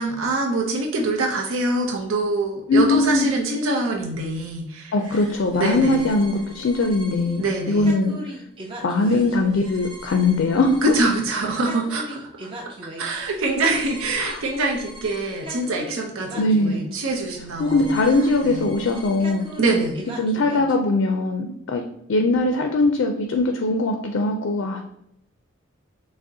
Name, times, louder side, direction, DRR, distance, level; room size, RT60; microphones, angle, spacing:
voice 1, 0.0-5.2 5.5-6.1 7.4-7.9 10.8-12.5 13.0-17.9 18.4-18.7 19.6-20.0, right 2 dB, 80° right, 0 dB, 0.6 m, -24 dB
voice 2, 2.7-3.3 4.9-8.3 8.8-10.8 14.2-14.4 16.4-16.8 17.6-19.5 20.2-21.8 22.1-24.8, left 2 dB, 65° left, 4 dB, 0.4 m, -21 dB
sound 1, 5.0-20.7, right 1 dB, 25° right, 0.5 m, -40 dB
6.0 x 2.1 x 2.7 m, 0.75 s
head